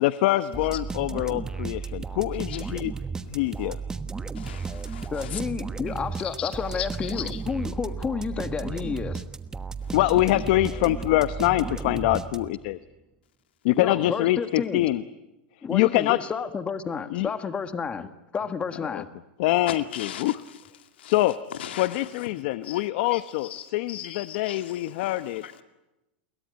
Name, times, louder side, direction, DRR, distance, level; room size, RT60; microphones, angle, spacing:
voice 1, 0.0-2.9 3.3-3.8 9.9-12.8 13.6-15.0 15.7-16.2 17.1-17.3 18.9-19.0 19.4-20.3 21.0-21.4 21.8-25.4, left 16 dB, 60° left, 0.9 m, -24 dB
sound 1, 0.5-12.8, right 5 dB, 10° right, 1.2 m, -34 dB
voice 2, 4.3-5.4 6.2-7.4 9.8-9.9 19.7-20.6 21.0-21.1 21.5-22.3 22.6-25.6, left 10 dB, 85° left, 2.3 m, -39 dB
voice 3, 5.1-9.2 13.8-14.9 15.6-19.1, left 6 dB, 20° left, 1.6 m, -31 dB
28.5 x 22.0 x 9.4 m
supercardioid pair, 125°, 6 cm